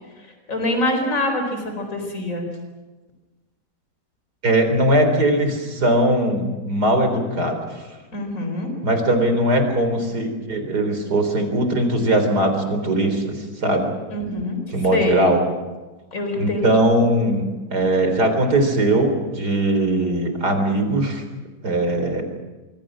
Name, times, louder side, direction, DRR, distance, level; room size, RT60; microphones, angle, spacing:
voice 1, 0.5-2.5 8.1-8.7 14.1-14.6 14.9-15.2 16.1-16.6, left 1 dB, 50° left, 5 dB, 4.8 m, -24 dB
voice 2, 4.4-7.8 8.8-13.9 14.7-15.4 16.4-21.2 21.6-22.2, right 1 dB, 75° right, 7 dB, 4.4 m, -20 dB
26.0 x 23.5 x 6.3 m, 1.2 s
omnidirectional pair, 1.7 m